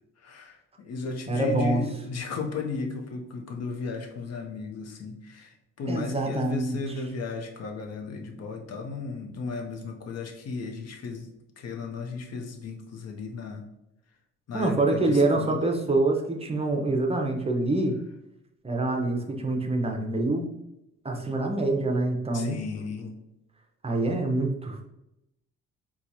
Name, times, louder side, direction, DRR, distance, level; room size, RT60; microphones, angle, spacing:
voice 1, 0.2-11.3 11.6-13.6 14.5-15.8 22.3-23.1, left 4 dB, 55° left, 3 dB, 0.8 m, -35 dB
voice 2, 1.3-1.8 5.9-6.8 14.5-18.0 18.6-20.5 21.0-22.6 23.8-24.8, right 2 dB, 20° right, 2 dB, 0.6 m, -26 dB
4.5 x 2.3 x 2.7 m, 0.87 s
cardioid pair, 90°, 30 cm